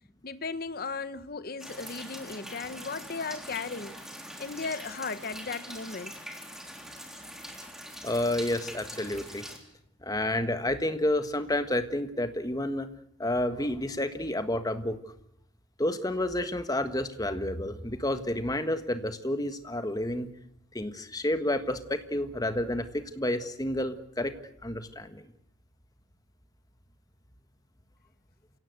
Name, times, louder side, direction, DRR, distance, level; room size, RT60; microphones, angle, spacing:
voice 1, 0.2-4.0 4.4-6.1 7.8-7.9, left 4 dB, 50° left, 1.0 m, -36 dB
sound 1, 1.6-9.6, equal, ahead, 3.3 m, -43 dB
voice 2, 8.0-9.4 10.0-12.9 13.2-15.0 15.8-20.3 20.7-24.3 24.6-25.3, left 1 dB, 20° left, 1.5 m, -30 dB
28.5 x 17.0 x 8.0 m
head